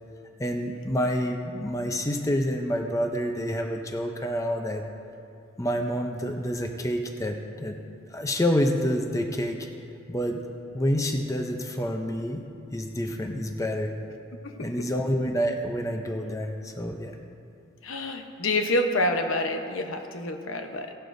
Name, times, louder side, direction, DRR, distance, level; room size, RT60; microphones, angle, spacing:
voice 1, 0.4-4.8 5.6-7.8 8.1-9.7 10.1-10.4 10.7-12.4 12.7-13.9 14.6-17.1, equal, 15° left, 4 dB, 0.6 m, -28 dB
voice 2, 14.4-14.9 17.8-20.9, left 1 dB, 80° left, 5 dB, 0.9 m, -28 dB
17.0 x 11.5 x 2.6 m, 2.6 s
head